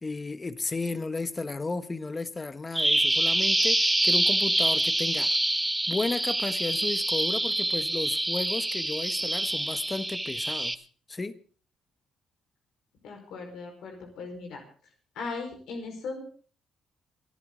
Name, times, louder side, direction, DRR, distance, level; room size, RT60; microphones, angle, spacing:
voice 1, 0.0-5.3 5.9-11.4, left 3 dB, 25° left, 1.4 m, -33 dB
Bird vocalization bird call bird song, 2.7-10.7, right 1 dB, 10° right, 0.8 m, -26 dB
voice 2, 13.0-14.6 15.1-16.2, left 4 dB, 80° left, 4.9 m, -38 dB
27.0 x 11.0 x 3.9 m
cardioid pair, 90°, 0 cm